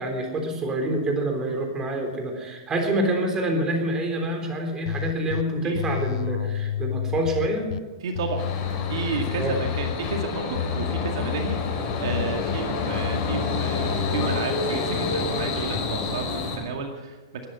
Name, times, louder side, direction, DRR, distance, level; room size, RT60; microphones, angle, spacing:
voice 1, 0.0-7.7 9.4-9.6, right 1 dB, 20° right, 4 dB, 3.7 m, -26 dB
sound 1, 4.9-5.4 5.7-7.8 8.1-10.2 10.5-12.6 12.9-14.4, left 11 dB, 70° left, 0.6 m, -30 dB
voice 2, 8.0-8.4 8.9-11.6 11.8-17.4, right 5 dB, 70° right, 3 dB, 2.1 m, -32 dB
sound 2, 8.4-16.6, left 4 dB, 40° left, 5.3 m, -29 dB
20.5 x 10.5 x 5.6 m, 1.2 s
hypercardioid pair, 120°, 3 cm